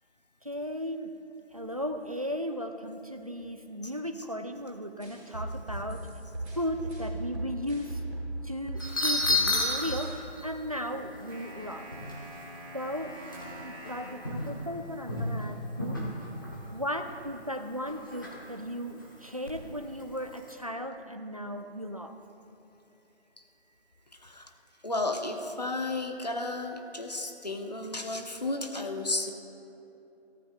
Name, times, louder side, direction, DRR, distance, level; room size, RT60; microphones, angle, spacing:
voice 1, 0.4-1.2 1.5-6.1 6.6-8.0 8.4-11.9 12.7-13.2 13.6-16.1 16.7-22.2, equal, 35° right, 7 dB, 0.5 m, -36 dB
sound 1, 5.0-8.3 8.7-10.1, right 1 dB, 10° right, 3.6 m, -37 dB
sound 2, 8.8-10.1 10.4-10.5 10.9-11.0 11.5-12.6 12.8-13.0 13.3-13.9 14.2-14.7 15.0-15.4 15.8-16.7 17.0-17.2 17.9-18.5 19.0-19.5 20.4-20.5, left 2 dB, 20° left, 1.1 m, -31 dB
sound 3, 11.3-14.3, equal, 60° right, 3.6 m, -45 dB
voice 2, 11.4-12.8 13.5-14.2 24.1-24.5 24.8-29.3, left 2 dB, 35° left, 4 dB, 0.9 m, -34 dB
22.5 x 15.0 x 2.4 m, 3.0 s
figure-of-eight pair, 175°, 34 cm